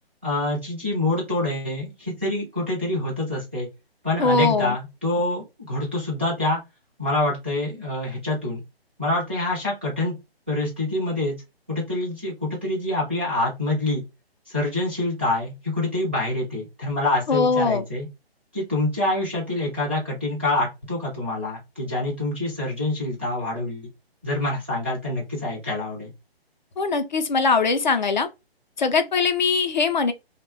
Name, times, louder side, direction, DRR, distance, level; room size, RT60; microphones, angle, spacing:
voice 1, 0.2-3.7 4.0-6.6 7.0-8.6 9.0-10.1 10.5-11.3 11.7-14.0 14.5-18.1 18.5-23.9 24.2-26.1, left 2 dB, 10° right, 0.4 m, -26 dB
voice 2, 4.2-4.8 17.3-17.8 26.8-28.3 28.8-30.1, left 4 dB, 50° left, 0.4 m, -21 dB
2.7 x 2.1 x 2.6 m
figure-of-eight pair, 145°, 31 cm